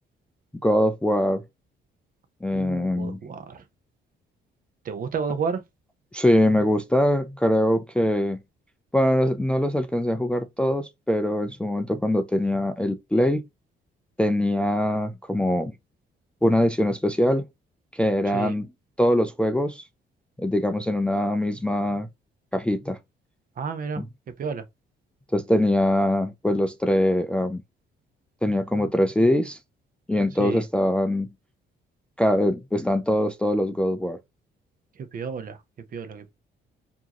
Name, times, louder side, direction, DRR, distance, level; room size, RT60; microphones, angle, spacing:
voice 1, 0.6-1.4 2.4-3.2 6.1-8.4 8.9-13.4 14.2-15.7 16.4-17.5 17.9-18.7 19.0-19.8 20.4-22.1 22.5-23.0 24.0-24.1 25.3-27.6 28.4-29.6 30.1-31.3 32.2-34.2, left 1 dB, 5° left, 0.4 m, -23 dB
voice 2, 2.5-3.6 4.8-5.6 18.3-18.5 23.6-24.0 24.4-24.6 30.4-30.6 35.1-35.6 35.9-36.3, right 5 dB, 50° right, 0.8 m, -31 dB
4.6 x 2.8 x 2.9 m
cardioid pair, 120°, 19 cm